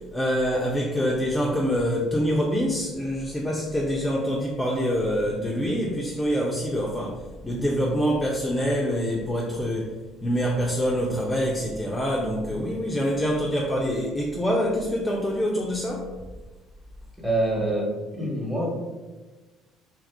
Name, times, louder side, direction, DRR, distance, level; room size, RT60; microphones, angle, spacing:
voice 1, 0.1-9.9 10.2-16.1, equal, 15° left, -2 dB, 0.5 m, -25 dB
voice 2, 17.2-17.9 18.1-18.7, right 1 dB, 10° right, -3 dB, 1.2 m, -25 dB
2.8 x 2.3 x 3.5 m, 1.2 s
supercardioid pair, 80°, 0 cm